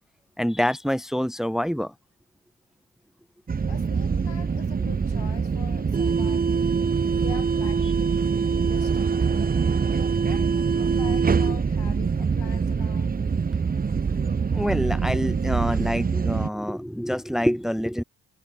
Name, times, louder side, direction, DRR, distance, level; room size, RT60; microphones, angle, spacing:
voice 1, 0.4-1.9 14.5-18.0, equal, ahead, 1.9 m, -26 dB
sound 1, 3.5-16.5, right 5 dB, 20° right, 0.5 m, -24 dB
voice 2, 3.7-6.7 7.1-9.6 10.2-13.2, left 10 dB, 75° left, 6.1 m, -44 dB
supercardioid pair, 40°, 43 cm